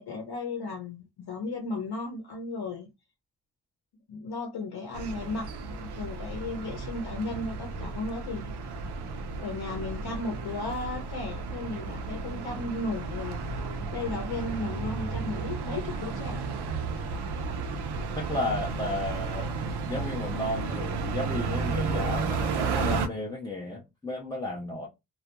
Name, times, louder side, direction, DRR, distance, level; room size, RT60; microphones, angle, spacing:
voice 1, 0.0-2.9 4.1-8.6 9.4-13.4 13.9-16.6 16.9-17.3, left 3 dB, 70° left, 0.7 m, -35 dB
sound 1, 4.9-23.1, right 4 dB, 75° right, 0.6 m, -33 dB
voice 2, 13.8-14.1 17.1-17.2 18.2-24.9, left 2 dB, 10° left, 0.3 m, -34 dB
2.3 x 2.1 x 2.8 m
wide cardioid pair, 180°, 40 cm